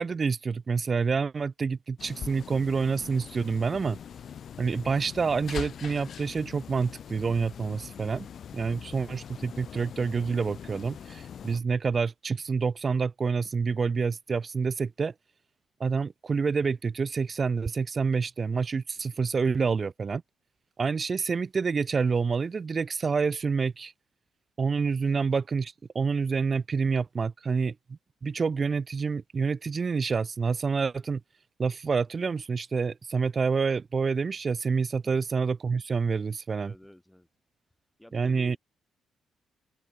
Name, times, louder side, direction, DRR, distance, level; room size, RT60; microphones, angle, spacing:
voice 1, 0.0-4.0 4.6-8.3 8.5-15.1 15.8-20.2 20.8-23.9 24.6-27.7 28.2-31.2 31.6-36.7 38.1-38.6, right 5 dB, 35° right, 1.1 m, -28 dB
sound 1, 2.0-11.6, left 8 dB, 60° left, 3.2 m, -42 dB
voice 2, 36.6-37.3 38.0-38.6, left 1 dB, 5° left, 6.3 m, -52 dB
open air
cardioid pair, 90°, 0 cm